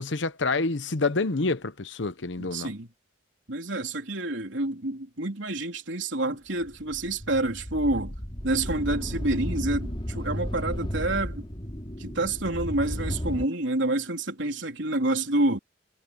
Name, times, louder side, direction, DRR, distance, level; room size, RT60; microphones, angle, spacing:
voice 1, 0.0-2.7, left 3 dB, 80° left, 1.0 m, -27 dB
voice 2, 2.4-2.9 3.5-8.1 8.4-11.5 12.0-15.6, right 2 dB, 85° right, 3.5 m, -28 dB
sound 1, 6.6-13.4, equal, 30° left, 2.9 m, -33 dB
head